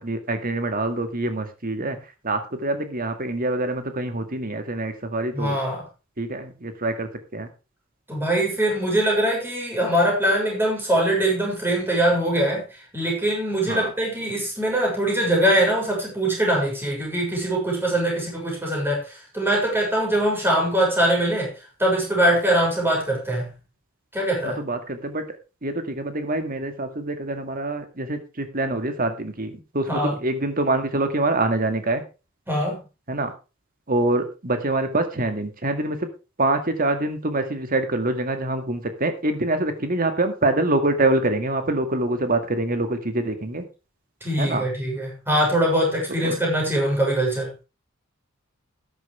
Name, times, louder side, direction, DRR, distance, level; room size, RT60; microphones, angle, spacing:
voice 1, 0.0-2.0 2.2-5.6 6.2-7.5 13.7-13.9 24.7-25.2 25.6-32.0 33.1-33.3 33.9-36.0 36.4-43.6 44.4-44.6 46.2-46.3, right 2 dB, 45° right, 2.1 m, -25 dB
voice 2, 5.3-5.8 8.1-21.5 21.8-23.5 24.1-24.6 29.9-30.1 32.5-32.8 44.2-47.5, right 1 dB, 10° right, 6.9 m, -22 dB
13.0 x 11.0 x 3.4 m
head